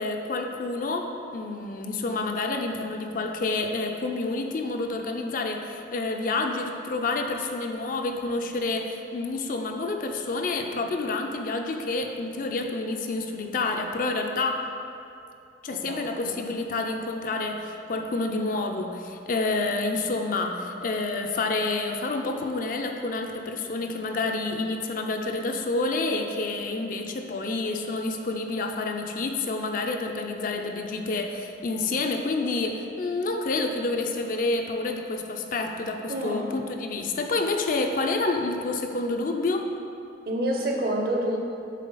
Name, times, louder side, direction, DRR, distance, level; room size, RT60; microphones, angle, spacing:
voice 1, 0.0-14.6 15.6-39.7, left 3 dB, 45° left, 4 dB, 0.4 m, -28 dB
voice 2, 15.7-16.4 36.1-36.5 40.3-41.4, right 1 dB, 55° right, 0 dB, 0.7 m, -28 dB
7.3 x 3.7 x 4.0 m, 2.7 s
head